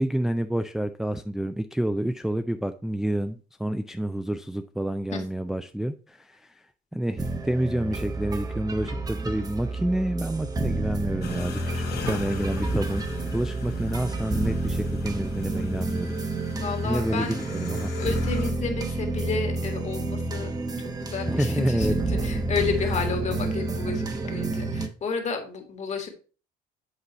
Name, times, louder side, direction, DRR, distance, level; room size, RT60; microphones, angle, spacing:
voice 1, 0.0-6.5 6.9-13.1 13.3-16.2 16.8-17.9 21.3-21.9, right 1 dB, ahead, 7 dB, 0.3 m, -28 dB
sound 1, 7.2-24.9, right 2 dB, 20° right, 0.8 m, -29 dB
sound 2, 11.2-18.5, left 7 dB, 70° left, 1.3 m, -40 dB
voice 2, 16.6-17.4 18.0-20.5 20.8-26.1, left 5 dB, 45° left, 5 dB, 1.7 m, -31 dB
8.1 x 4.0 x 4.0 m, 0.36 s
cardioid pair, 110°, 17 cm